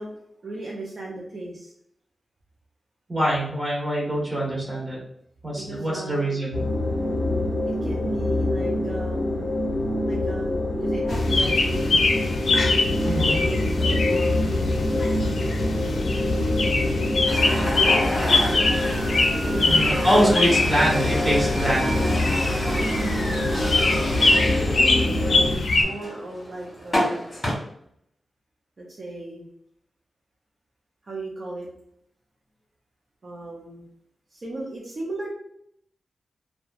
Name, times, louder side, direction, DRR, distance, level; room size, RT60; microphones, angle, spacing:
voice 1, 0.0-1.7 5.5-6.4 7.6-9.5 10.0-11.9 13.1-14.7 16.2-18.9 19.4-20.5 22.6-23.0 24.2-27.2 28.8-29.5 31.0-31.7 33.2-33.9 34.3-35.3, right 2 dB, 50° right, -4 dB, 0.6 m, -36 dB
voice 2, 3.1-5.0 5.4-6.6 13.0-13.4 19.6-21.9, equal, 20° right, -5 dB, 1.2 m, -24 dB
sound 1, 6.5-25.6, left 1 dB, 40° left, 0.7 m, -26 dB
sound 2, 11.1-25.8, left 3 dB, 85° left, 0.4 m, -24 dB
sound 3, 17.3-27.5, equal, 15° left, 1.3 m, -30 dB
2.8 x 2.2 x 2.3 m, 0.71 s
wide cardioid pair, 105°, 0 cm